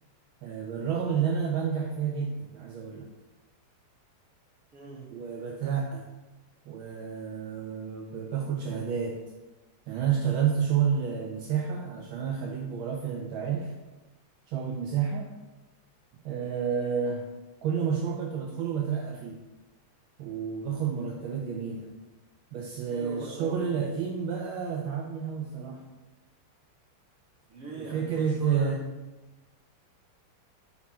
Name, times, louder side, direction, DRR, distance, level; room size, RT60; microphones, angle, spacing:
voice 1, 0.4-3.1 5.1-6.1 6.7-9.2 9.9-13.7 14.5-15.3 16.2-17.2 17.6-19.4 20.2-21.9 22.5-25.9 27.8-28.8, right 7 dB, 80° right, 1 dB, 1.4 m, -30 dB
voice 2, 4.7-5.1 22.9-23.8 27.5-28.7, right 3 dB, 45° right, -5 dB, 2.0 m, -41 dB
4.3 x 4.2 x 5.6 m, 1.1 s
omnidirectional pair, 2.3 m